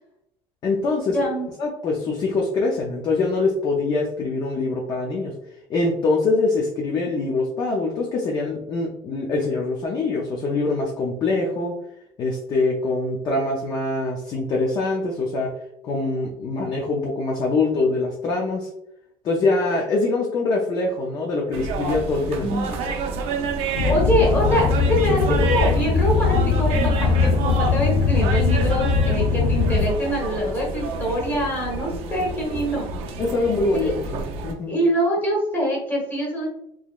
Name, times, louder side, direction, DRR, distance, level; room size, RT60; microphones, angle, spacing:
voice 1, 0.6-1.2 1.6-5.3 5.7-11.7 12.2-15.5 15.8-18.7 19.2-22.7 33.2-34.8, left 3 dB, 35° left, -1 dB, 0.5 m, -24 dB
voice 2, 1.1-1.5 22.4-22.8 23.6-32.9 33.7-33.9 34.7-36.5, equal, 15° left, -3 dB, 1.3 m, -24 dB
sound 1, 21.5-34.5, right 4 dB, 60° right, 0.6 m, -29 dB
sound 2, 23.8-29.9, left 5 dB, 75° left, 0.7 m, -20 dB
3.9 x 3.0 x 2.4 m, 0.78 s
cardioid pair, 175°, 12 cm